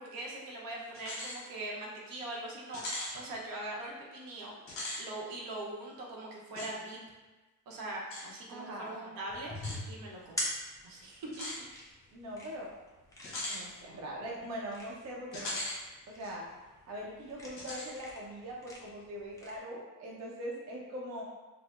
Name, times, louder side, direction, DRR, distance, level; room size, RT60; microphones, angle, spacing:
voice 1, 0.0-4.5 5.0-7.0 7.7-10.4 10.8-11.4, right 1 dB, 85° right, -2 dB, 0.8 m, -42 dB
sound 1, 0.9-1.4 1.8-1.9 2.7-3.2 4.6-5.0 6.5-6.7 8.1-8.3 9.5-9.8 11.3-11.6 13.2-13.6 15.3-15.8 16.2-16.3 17.6-17.9, left 1 dB, 40° left, 0.9 m, -39 dB
voice 2, 8.5-9.1 12.1-12.7 13.5-15.6 16.1-16.5 16.9-21.2, equal, 50° right, -3 dB, 0.7 m, -42 dB
sound 2, 9.3-19.6, left 1 dB, 10° left, 0.6 m, -44 dB
4.4 x 2.0 x 2.4 m, 1.2 s
cardioid pair, 140°, 34 cm